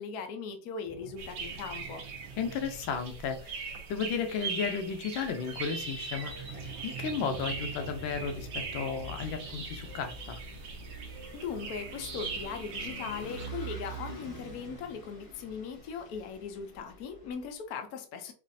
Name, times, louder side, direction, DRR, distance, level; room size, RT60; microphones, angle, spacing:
voice 1, 0.0-2.0 11.3-18.3, left 6 dB, 65° left, 1.0 m, -39 dB
Sliding door, 0.8-4.6 5.3-14.9, right 3 dB, 85° right, 1.4 m, -47 dB
sound 1, 1.2-13.5, right 4 dB, 65° right, 1.3 m, -41 dB
voice 2, 2.4-10.4, left 6 dB, 85° left, 1.5 m, -34 dB
Vehicle / Engine, 7.9-17.6, right 3 dB, 45° left, 1.3 m, -46 dB
5.1 x 2.5 x 2.6 m
omnidirectional pair, 2.1 m